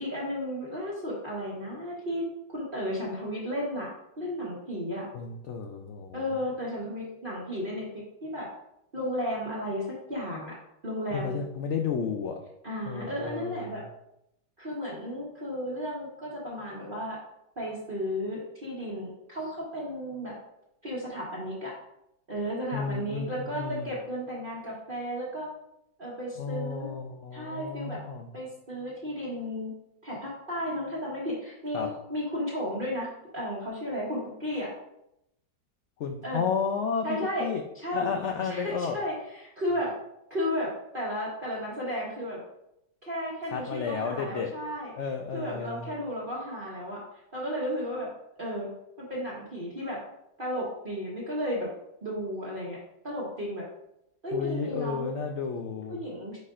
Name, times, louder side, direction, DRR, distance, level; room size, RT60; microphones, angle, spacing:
voice 1, 0.0-3.9 4.2-5.0 6.1-8.5 8.9-10.6 10.8-11.4 12.6-13.8 14.6-17.2 17.6-20.3 20.8-21.7 22.3-25.5 26.0-26.9 27.3-28.0 28.3-29.7 30.0-33.1 33.3-34.7 36.2-36.4 37.0-37.5 37.7-38.1 38.4-39.9 40.3-42.4 43.0-44.9 45.3-47.0 47.3-48.1 48.4-48.7 49.0-50.0 50.4-51.7 52.0-52.8 53.0-53.7 54.2-55.2 55.9-56.4, equal, 35° right, -7 dB, 1.2 m, -33 dB
voice 2, 5.1-6.3 11.1-12.4 12.9-13.6 22.7-23.9 26.4-28.3 31.7-31.9 36.0-37.6 37.9-39.0 43.5-44.5 45.0-45.9 54.3-56.0, left 6 dB, 85° left, 4 dB, 0.6 m, -32 dB
9.2 x 4.3 x 2.5 m, 0.82 s
omnidirectional pair, 1.9 m